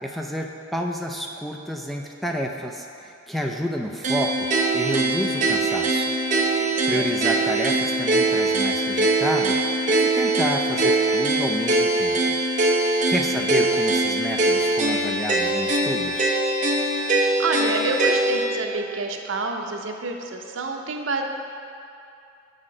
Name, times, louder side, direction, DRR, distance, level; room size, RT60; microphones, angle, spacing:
voice 1, 0.0-6.1 6.9-9.6 9.9-12.4 13.1-16.3, equal, ahead, 1 dB, 0.3 m, -29 dB
sound 1, 4.0-18.5, right 2 dB, 40° right, 0.6 m, -22 dB
voice 2, 6.7-7.1 17.4-21.2, right 3 dB, 90° right, 3 dB, 0.6 m, -28 dB
7.5 x 4.2 x 4.9 m, 2.6 s
head